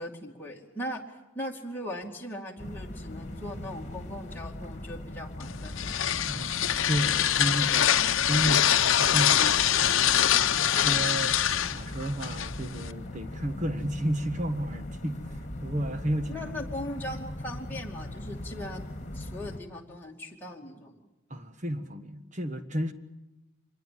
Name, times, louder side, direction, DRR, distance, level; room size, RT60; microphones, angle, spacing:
voice 1, 0.0-6.0 16.3-18.8 19.1-21.0, left 1 dB, 10° left, 2.4 m, -39 dB
sound 1, 2.6-19.6, left 1 dB, 35° left, 2.2 m, -40 dB
sound 2, 5.4-12.9, left 10 dB, 65° left, 0.9 m, -24 dB
voice 2, 6.2-10.3 10.6-11.4 11.7-16.5 21.3-22.9, right 1 dB, 35° right, 1.5 m, -32 dB
25.5 x 21.0 x 7.7 m
head